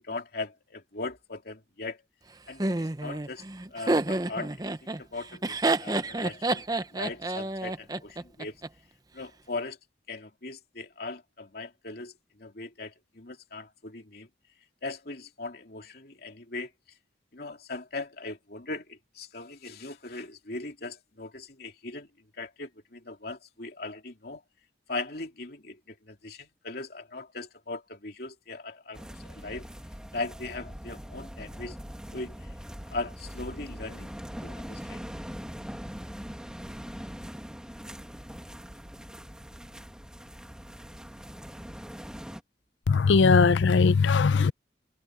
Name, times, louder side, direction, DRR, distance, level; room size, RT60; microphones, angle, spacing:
voice 1, 0.0-2.0 2.5-6.6 6.9-8.5 9.1-9.8 10.1-12.1 12.4-14.3 14.8-16.7 17.3-22.1 22.4-24.4 24.9-29.7 30.1-31.8 32.1-32.5 32.9-34.1 34.4-35.0, left 3 dB, 55° left, 3.0 m, -39 dB
Laughter, 2.6-8.7, right 2 dB, 20° right, 0.7 m, -29 dB
sound 1, 28.9-42.4, equal, 5° right, 1.6 m, -42 dB
voice 2, 42.9-44.5, left 4 dB, 75° left, 0.5 m, -20 dB
head